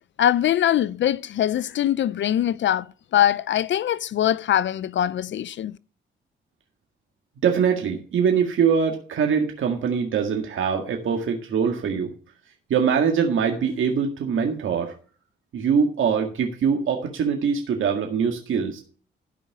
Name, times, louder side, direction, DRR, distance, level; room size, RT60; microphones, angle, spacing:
voice 1, 0.2-5.8, left 11 dB, 60° left, 0.5 m, -22 dB
voice 2, 7.4-12.1 12.7-14.9 15.5-18.8, right 6 dB, 70° right, 1.9 m, -23 dB
13.0 x 5.4 x 7.2 m
supercardioid pair, 55°, 21 cm